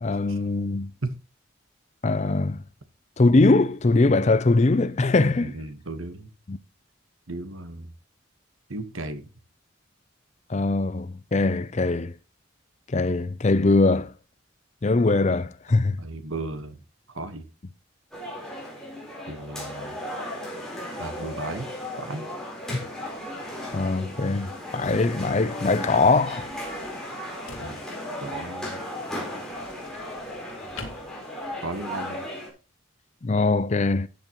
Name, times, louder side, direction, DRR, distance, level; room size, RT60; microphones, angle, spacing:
voice 1, 0.0-0.9 2.0-2.6 3.2-5.5 6.5-6.6 10.5-12.1 12.9-14.1 14.8-16.0 22.7-22.8 23.7-26.5 33.2-34.1, left 3 dB, 35° left, 0.5 m, -22 dB
voice 2, 5.2-6.3 7.3-7.9 8.7-9.3 16.0-17.5 19.3-20.0 21.0-21.7 22.0-22.3 27.6-27.9 28.2-28.9 31.6-32.3, right 2 dB, 80° right, 1.3 m, -35 dB
sound 1, 18.1-32.5, left 1 dB, 5° left, 4.1 m, -36 dB
sound 2, 25.7-31.9, left 3 dB, 80° left, 2.4 m, -49 dB
13.0 x 9.0 x 3.0 m
head